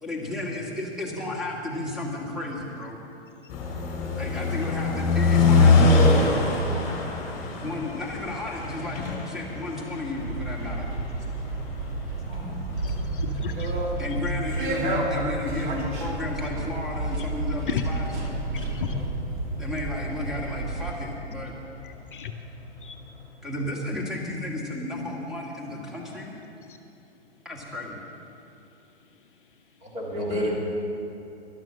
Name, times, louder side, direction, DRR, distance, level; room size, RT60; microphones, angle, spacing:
voice 1, 0.0-3.0 4.2-6.4 7.6-10.9 14.0-18.1 19.6-21.5 23.4-26.3 27.5-28.0, left 2 dB, ahead, -2 dB, 1.9 m, -33 dB
sound 1, 3.5-18.7 19.0-19.1, left 3 dB, 25° left, 2.8 m, -25 dB
sound 2, 10.2-20.9, right 2 dB, 45° right, 2.3 m, -31 dB
voice 2, 12.3-12.6 29.8-30.6, left 1 dB, 20° right, -3 dB, 2.8 m, -30 dB
voice 3, 12.8-13.7 17.2-17.3 17.7-17.8 18.5-19.0 21.8-22.3 22.8-22.9 26.7-26.8, left 8 dB, 50° left, 5 dB, 0.9 m, -33 dB
12.5 x 12.0 x 6.4 m, 2.9 s
figure-of-eight pair, 115°, 33 cm